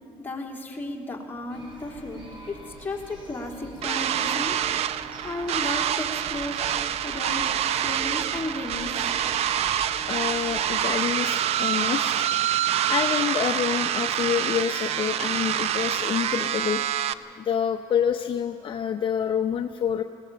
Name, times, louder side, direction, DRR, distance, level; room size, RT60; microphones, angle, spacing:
voice 1, 0.2-2.2 2.5-4.6 5.2-6.6 7.0-7.5 7.8-9.1, left 2 dB, 15° left, 0 dB, 3.2 m, -34 dB
sound 1, 1.5-10.9, right 1 dB, 45° right, 6.4 m, -44 dB
sound 2, 3.8-17.1, right 10 dB, 60° right, 0.6 m, -26 dB
voice 2, 10.1-12.3 12.9-16.8 17.4-20.0, left 8 dB, 45° left, 6 dB, 0.7 m, -27 dB
20.5 x 17.0 x 7.6 m, 2.4 s
cardioid pair, 100°, 12 cm